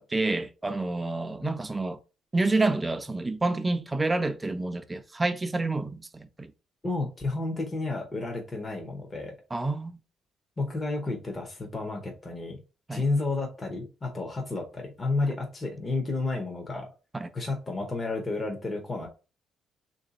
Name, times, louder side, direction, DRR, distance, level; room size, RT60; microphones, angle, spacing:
voice 1, 0.0-2.0 2.3-6.5 9.5-10.0 12.9-13.0 17.2-17.3, right 2 dB, 15° right, 0.4 m, -28 dB
voice 2, 6.8-9.3 10.6-12.6 12.9-16.9 17.3-19.1, left 3 dB, 20° left, 0.7 m, -31 dB
3.1 x 2.6 x 3.9 m
cardioid pair, 140°, 0 cm